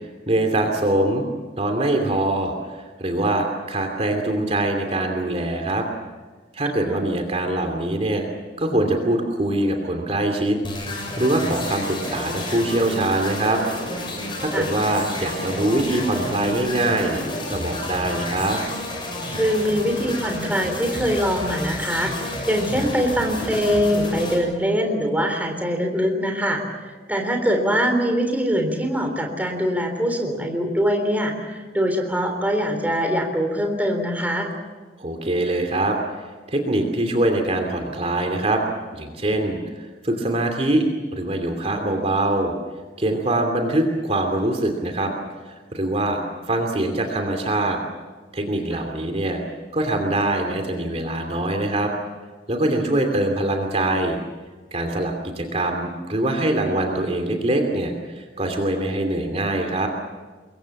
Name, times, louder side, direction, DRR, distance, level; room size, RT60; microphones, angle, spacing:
voice 1, 0.3-1.2 1.6-5.9 6.5-8.3 8.6-10.6 11.2-13.6 14.4-17.2 17.5-18.6 35.0-36.0 36.5-38.6 38.9-40.8 41.1-42.5 43.0-45.1 45.4-46.2 46.5-47.8 48.3-49.4 49.7-51.9 52.5-54.2 54.7-59.9, right 1 dB, 35° right, 4 dB, 2.8 m, -23 dB
sound 1, 10.6-24.4, left 1 dB, 30° left, 7.0 m, -30 dB
voice 2, 19.3-34.5 48.7-48.8, equal, 10° right, 3 dB, 3.5 m, -23 dB
26.5 x 22.5 x 7.3 m, 1.4 s
head